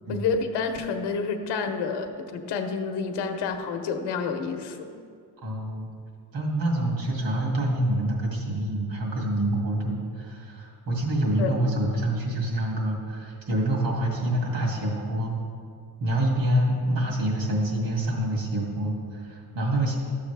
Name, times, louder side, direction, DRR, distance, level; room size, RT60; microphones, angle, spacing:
voice 1, 0.1-4.9 11.4-11.5, left 5 dB, 70° left, 6 dB, 0.9 m, -29 dB
voice 2, 5.4-5.9 6.3-15.3 16.0-19.9, right 1 dB, 55° right, -1 dB, 2.2 m, -26 dB
12.5 x 7.2 x 3.3 m, 2.3 s
cardioid pair, 145°, 42 cm